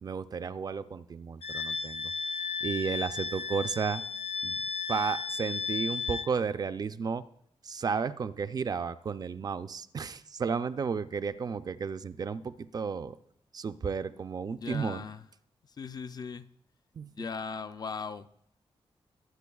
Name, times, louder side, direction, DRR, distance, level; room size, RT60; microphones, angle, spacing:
voice 1, 0.0-4.0 4.4-4.6 4.9-7.2 7.6-13.2 13.5-15.0 17.0-17.1, right 5 dB, 40° right, 13 dB, 0.4 m, -33 dB
Wind instrument woodwind instrument, 1.4-6.3, left 5 dB, 85° left, 0.7 m, -34 dB
voice 2, 14.6-15.2 15.8-16.5 17.1-18.4, left 5 dB, 40° left, 12 dB, 0.4 m, -38 dB
20.5 x 8.2 x 2.3 m, 0.72 s
wide cardioid pair, 145°, 10 cm